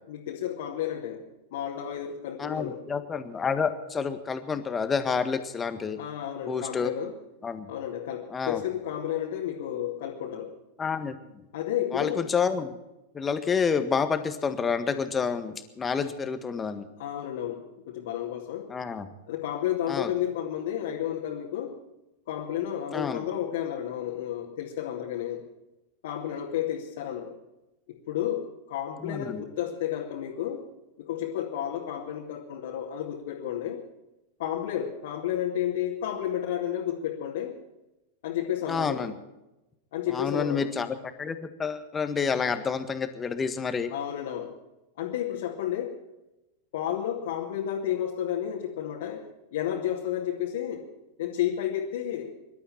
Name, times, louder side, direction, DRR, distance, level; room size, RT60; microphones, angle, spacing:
voice 1, 0.1-1.2 1.5-2.8 6.0-7.1 7.7-10.6 11.5-12.2 17.0-18.7 19.3-21.7 22.3-25.4 26.0-27.4 28.1-30.6 31.0-33.8 34.4-37.5 38.2-39.1 39.9-40.7 43.9-44.5 45.0-46.0 46.7-50.9 51.2-52.3, left 10 dB, 55° left, -2 dB, 2.4 m, -31 dB
voice 2, 2.4-6.0 6.4-6.9 7.4-7.7 8.3-8.6 10.8-11.4 11.9-12.8 13.1-16.9 18.7-19.1 19.9-20.1 22.9-23.2 29.0-29.4 38.7-39.1 40.1-43.9, left 6 dB, 20° left, 9 dB, 1.6 m, -29 dB
25.0 x 12.5 x 4.4 m, 0.95 s
figure-of-eight pair, 90°, 0 cm